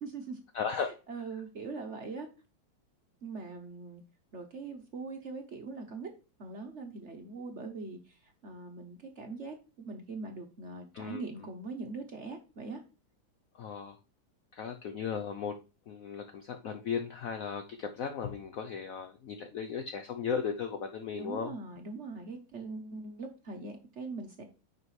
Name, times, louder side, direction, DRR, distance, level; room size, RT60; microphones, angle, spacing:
voice 1, 0.0-0.4 0.7-2.3 3.2-4.0 4.3-6.1 6.4-12.8 21.2-24.4, right 3 dB, 45° right, 5 dB, 1.0 m, -42 dB
voice 2, 0.5-1.0 10.9-11.2 13.6-14.0 14.5-15.6 15.9-21.5, left 6 dB, 75° left, 7 dB, 0.7 m, -36 dB
9.5 x 5.1 x 3.2 m, 0.32 s
omnidirectional pair, 2.2 m